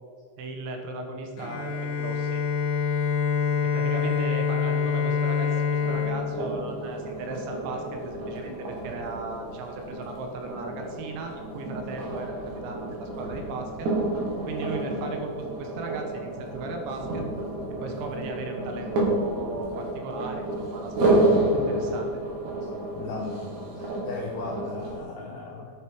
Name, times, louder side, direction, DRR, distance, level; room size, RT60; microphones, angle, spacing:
voice 1, 0.4-2.4 3.6-13.9 14.4-17.2 17.8-22.1, right 3 dB, 70° right, 3 dB, 3.3 m, -37 dB
Bowed string instrument, 1.4-7.4, left 6 dB, 65° left, 3.6 m, -26 dB
sound 1, 5.8-25.0, right 1 dB, 55° right, 2.4 m, -30 dB
voice 2, 21.3-21.8 22.9-25.7, left 3 dB, 85° left, -1 dB, 1.9 m, -37 dB
10.5 x 9.8 x 4.8 m, 2.2 s
omnidirectional pair, 5.9 m